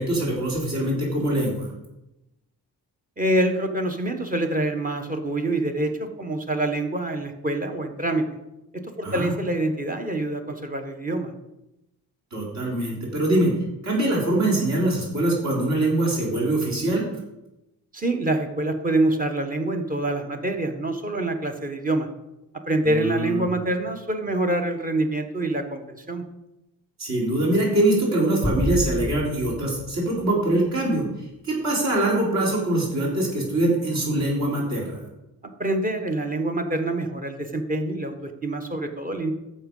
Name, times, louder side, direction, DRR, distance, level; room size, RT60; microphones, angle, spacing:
voice 1, 0.0-1.7 9.0-9.3 12.3-13.5 13.8-17.0 22.8-23.5 27.0-31.0 31.4-35.0, right 1 dB, 50° right, -3 dB, 4.0 m, -23 dB
voice 2, 3.2-8.2 8.7-11.3 17.9-22.1 22.7-26.2 35.6-39.3, right 2 dB, 25° right, 5 dB, 1.2 m, -26 dB
sound 1, 28.4-30.9, equal, 5° right, 2.0 m, -30 dB
11.5 x 7.5 x 5.5 m, 0.92 s
wide cardioid pair, 155°, 35 cm